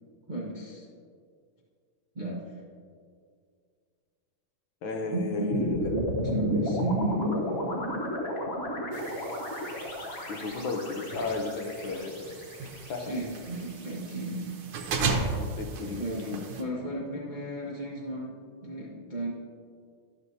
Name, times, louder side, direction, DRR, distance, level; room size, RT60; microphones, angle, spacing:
voice 1, 0.3-0.9 2.1-2.4 5.1-7.4 13.0-14.5 15.8-19.3, right 1 dB, 40° right, -5 dB, 0.6 m, -33 dB
voice 2, 4.8-5.9 10.3-12.3 12.9-13.1 15.4-16.5, left 3 dB, 70° left, 3 dB, 1.5 m, -34 dB
sound 1, 5.5-13.8, equal, 45° left, 0.8 m, -33 dB
sound 2, 8.9-16.6, right 3 dB, 75° right, 1.6 m, -36 dB
12.0 x 6.1 x 2.7 m, 2.1 s
omnidirectional pair, 2.3 m